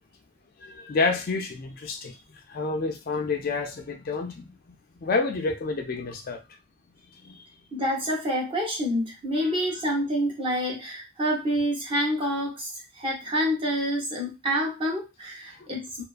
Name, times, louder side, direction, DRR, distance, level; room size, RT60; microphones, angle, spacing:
voice 1, 0.6-2.2 2.5-4.5 5.0-6.4 7.2-7.4, left 4 dB, 40° left, 3 dB, 0.3 m, -29 dB
voice 2, 7.7-16.0, equal, 25° right, -1 dB, 0.6 m, -27 dB
2.3 x 2.3 x 2.4 m, 0.25 s
head